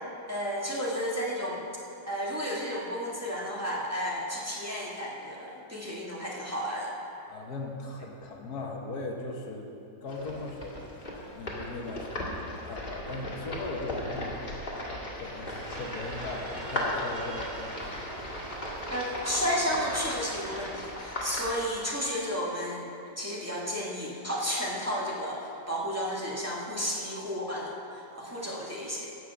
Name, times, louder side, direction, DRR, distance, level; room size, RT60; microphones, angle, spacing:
voice 1, 0.3-1.6 2.1-6.9 18.9-22.9 23.2-29.1, equal, 10° right, -5 dB, 1.9 m, -32 dB
voice 2, 7.3-9.7 10.0-14.4 15.2-18.3, left 2 dB, 75° left, 2 dB, 1.7 m, -38 dB
sound 1, 10.1-21.7, left 1 dB, 35° left, 2.0 m, -37 dB
sound 2, 15.7-20.8, right 3 dB, 40° right, 0.7 m, -43 dB
16.5 x 6.4 x 7.0 m, 2.7 s
omnidirectional pair, 1.7 m